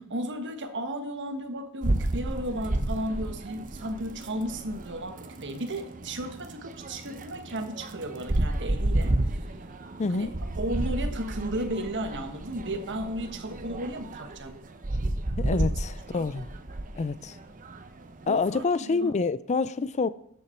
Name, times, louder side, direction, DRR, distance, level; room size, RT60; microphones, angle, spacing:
voice 1, 0.1-9.2 10.1-10.3 10.6-14.6 15.4-15.7 16.1-16.3 18.3-19.1, right 1 dB, 55° right, 1.3 m, -34 dB
sound 1, 1.8-18.6, right 1 dB, 35° right, 0.9 m, -32 dB
voice 2, 10.0-10.3 15.4-16.5 17.0-17.4 18.3-20.1, left 4 dB, 30° left, 0.4 m, -27 dB
13.0 x 8.0 x 4.4 m
head